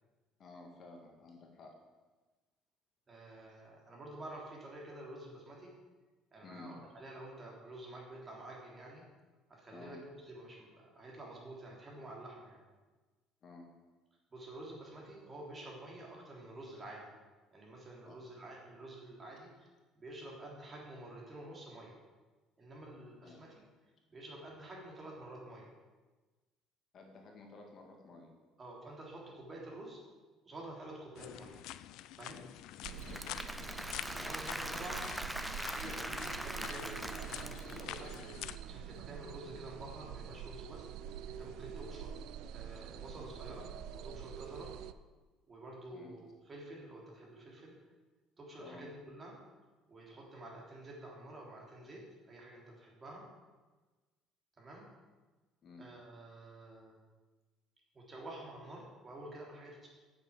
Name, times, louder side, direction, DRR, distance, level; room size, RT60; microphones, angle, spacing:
voice 1, 0.4-1.7 3.5-3.6 6.4-6.8 9.7-10.0 13.4-13.7 18.0-18.1 23.2-23.4 26.9-28.4 33.1-33.3 45.9-46.1 48.6-48.9 55.6-55.9, left 3 dB, 40° left, 2 dB, 2.1 m, -53 dB
voice 2, 3.1-5.7 6.3-9.0 9.5-12.6 14.3-17.1 17.5-19.7 19.9-22.0 22.6-23.5 24.1-25.7 28.6-30.0 30.4-31.6 32.2-32.4 34.1-35.1 35.7-40.8 41.3-42.2 42.5-44.7 45.5-47.7 48.4-49.4 49.9-52.0 52.3-53.2 54.6-54.9 55.8-57.0 57.9-59.9, right 1 dB, 25° right, -2 dB, 3.6 m, -49 dB
sound 1, 31.2-38.6, left 14 dB, 75° left, 0.5 m, -47 dB
Applause / Crowd, 32.8-38.1, right 1 dB, 5° right, 0.6 m, -42 dB
sound 2, 32.8-44.9, right 9 dB, 70° right, 0.5 m, -46 dB
9.3 x 8.0 x 8.8 m, 1.3 s
cardioid pair, 140°, 0 cm